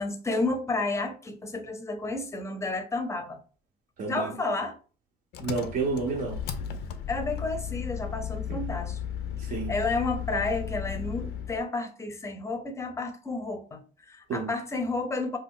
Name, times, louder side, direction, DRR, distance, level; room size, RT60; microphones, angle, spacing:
voice 1, 0.0-3.4 4.1-4.8 7.1-9.0 9.5-15.4, left 3 dB, 15° left, 0.6 m, -31 dB
voice 2, 4.0-4.4 5.4-6.4 8.5-8.7 9.4-9.7 14.3-14.5, right 4 dB, 55° right, 0.6 m, -30 dB
Engine, 5.3-11.6, left 8 dB, 75° left, 0.4 m, -35 dB
2.6 x 2.3 x 3.6 m
cardioid pair, 110°, 17 cm